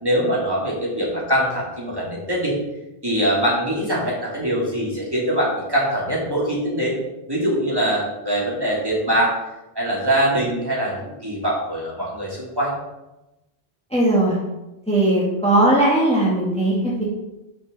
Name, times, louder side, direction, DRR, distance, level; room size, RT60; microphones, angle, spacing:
voice 1, 0.0-2.5 3.0-7.0 7.3-9.4 9.7-12.8, right 1 dB, 20° right, -5 dB, 2.7 m, -23 dB
voice 2, 13.9-14.4 14.9-17.0, right 1 dB, 5° left, -6 dB, 1.7 m, -18 dB
6.7 x 5.4 x 6.7 m, 0.99 s
omnidirectional pair, 1.1 m